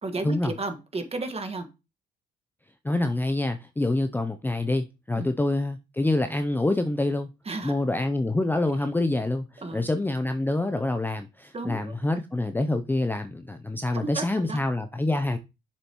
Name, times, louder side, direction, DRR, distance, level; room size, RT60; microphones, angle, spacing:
voice 1, 0.0-1.7 5.1-5.3 7.4-7.7 9.6-9.9 11.5-11.9 13.9-14.6, right 2 dB, 30° right, 1.6 m, -33 dB
voice 2, 2.8-7.3 7.6-15.4, left 2 dB, 10° left, 0.5 m, -26 dB
7.0 x 7.0 x 3.0 m
cardioid pair, 90°, 20 cm